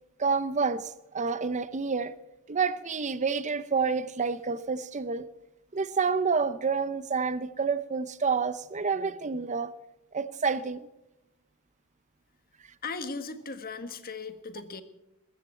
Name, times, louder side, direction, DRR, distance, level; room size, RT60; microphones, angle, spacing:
voice 1, 0.2-2.1 2.5-5.3 5.7-9.7 10.1-10.8, right 5 dB, 35° right, 0.6 m, -28 dB
voice 2, 12.8-14.8, left 4 dB, 40° left, 1.5 m, -37 dB
21.5 x 14.5 x 4.4 m
head